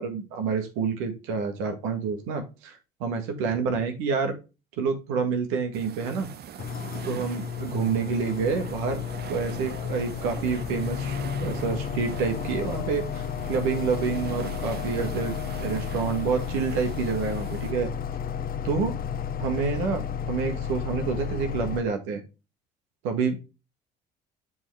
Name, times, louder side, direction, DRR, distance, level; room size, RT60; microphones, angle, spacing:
voice 1, 0.0-4.4 4.8-6.3 7.1-9.0 9.3-17.9 18.6-19.0 19.4-22.2 23.0-23.4, right 5 dB, 80° right, 6 dB, 1.7 m, -28 dB
sound 1, 5.7-17.7, right 9 dB, 50° right, 0.8 m, -42 dB
sound 2, 6.6-21.8, left 8 dB, 45° left, 0.7 m, -32 dB
7.1 x 5.2 x 3.3 m, 0.28 s
hypercardioid pair, 60°, 21 cm